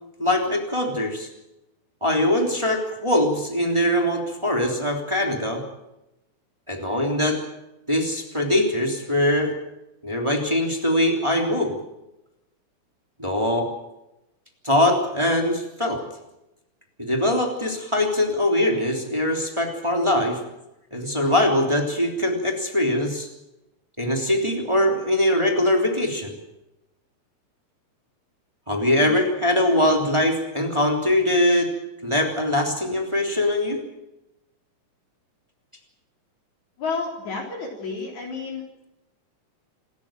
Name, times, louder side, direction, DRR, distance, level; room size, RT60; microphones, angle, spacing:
voice 1, 0.2-1.3 2.0-5.6 6.7-7.4 7.9-9.5 10.0-11.8 13.2-13.7 14.6-16.0 17.0-20.4 20.9-23.3 24.0-26.3 28.7-31.7 32.0-33.8, left 1 dB, 10° right, 2 dB, 3.2 m, -22 dB
voice 2, 36.8-38.6, left 4 dB, 70° left, -1 dB, 5.2 m, -31 dB
27.5 x 13.5 x 9.0 m, 0.93 s
omnidirectional pair, 3.4 m